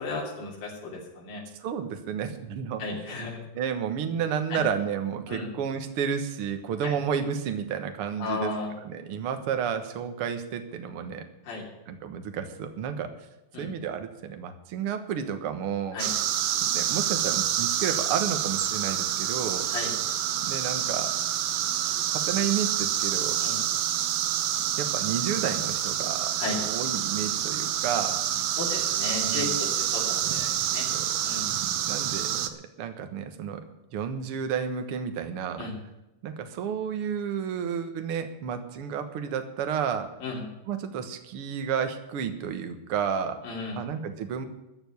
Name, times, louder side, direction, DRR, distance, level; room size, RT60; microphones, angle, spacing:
voice 1, 0.0-1.4 2.8-3.4 4.5-4.6 5.3-5.5 6.8-6.9 8.2-8.7 11.5-11.6 13.5-13.7 15.9-16.1 19.7-19.9 23.4-23.6 26.4-26.6 28.6-30.9 31.2-31.5 35.6-35.7 40.2-40.4 43.4-43.8, left 3 dB, 75° left, -3 dB, 4.7 m, -34 dB
voice 2, 1.6-3.1 3.5-8.5 8.8-11.2 11.9-13.1 13.6-16.0 16.6-19.7 20.4-21.1 22.1-23.4 24.8-28.2 29.2-29.6 30.9-31.1 31.9-33.6 33.9-35.6 36.2-40.1 40.7-43.4 43.8-44.5, right 7 dB, 55° right, 7 dB, 1.6 m, -31 dB
sound 1, 16.0-32.5, right 11 dB, 85° right, 1.4 m, -27 dB
14.0 x 7.1 x 9.6 m, 0.94 s
omnidirectional pair, 4.1 m